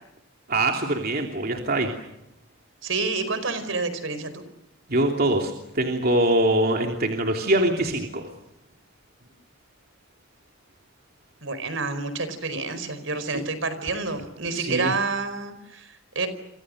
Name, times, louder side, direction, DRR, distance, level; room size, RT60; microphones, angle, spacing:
voice 1, 0.5-1.9 4.9-8.2 13.3-13.4 14.5-14.9, right 1 dB, 50° right, 2 dB, 3.0 m, -23 dB
voice 2, 2.8-4.4 11.4-16.3, right 3 dB, 75° right, 12 dB, 4.7 m, -28 dB
30.0 x 26.0 x 6.5 m, 0.86 s
head